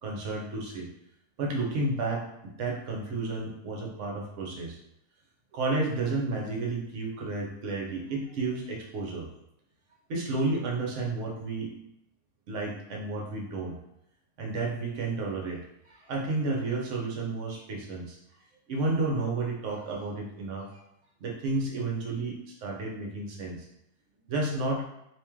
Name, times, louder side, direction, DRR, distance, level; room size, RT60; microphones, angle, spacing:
voice 1, 0.0-0.9 1.4-4.8 5.5-9.3 10.1-11.7 12.5-13.7 14.4-15.6 15.9-18.2 18.7-20.8 21.2-23.6 24.2-24.9, right 3 dB, 55° right, -1 dB, 0.9 m, -31 dB
3.0 x 2.8 x 3.5 m, 0.82 s
omnidirectional pair, 1.7 m